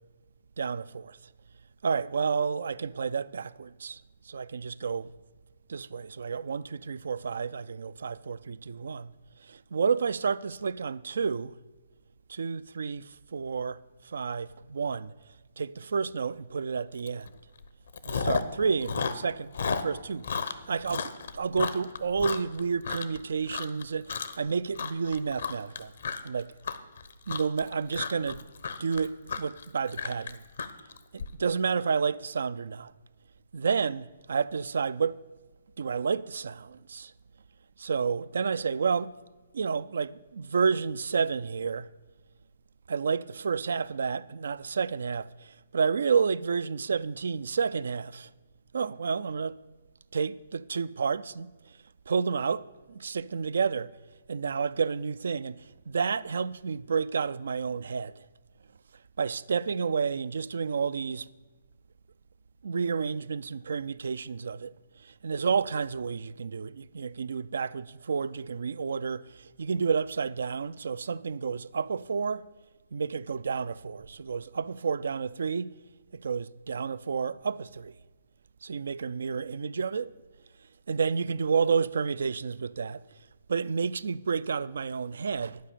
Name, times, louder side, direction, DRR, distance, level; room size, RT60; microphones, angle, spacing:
voice 1, 0.6-1.2 1.8-4.0 4.3-5.1 5.7-9.1 9.4-11.6 12.3-15.1 15.6-17.3 18.1-25.9 26.2-26.5 27.3-28.4 28.8-30.4 31.1-32.9 33.5-35.2 35.8-37.1 37.8-39.1 39.5-41.9 42.9-48.3 48.7-49.6 50.1-51.5 52.1-53.9 54.3-58.3 59.2-61.3 62.6-64.7 65.0-72.4 72.9-75.7 76.1-78.0 78.6-80.1 80.9-83.0 83.5-85.6, right 5 dB, 70° right, 0.3 m, -30 dB
Chewing mastication, 17.1-17.3 17.6-18.6 18.8-23.2 23.5-23.8 24.1-24.5 24.7-31.3, left 5 dB, 70° left, 0.8 m, -33 dB
11.0 x 5.0 x 8.4 m
hypercardioid pair, 140°, 0 cm